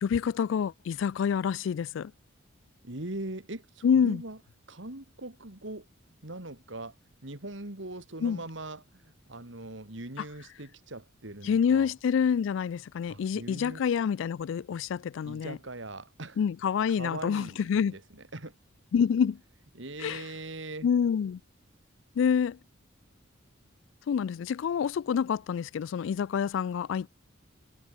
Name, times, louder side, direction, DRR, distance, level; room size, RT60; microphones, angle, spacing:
voice 1, 0.0-2.1 3.8-4.2 8.2-8.4 11.4-15.6 16.4-18.0 18.9-19.4 20.0-20.2 20.8-21.4 22.2-22.6 24.1-27.1, left 7 dB, 70° left, 0.3 m, -27 dB
voice 2, 2.8-4.4 4.7-5.9 6.2-6.9 7.2-11.9 13.1-13.8 15.2-16.4 16.9-18.5 19.7-20.9, right 2 dB, 65° right, 2.7 m, -41 dB
head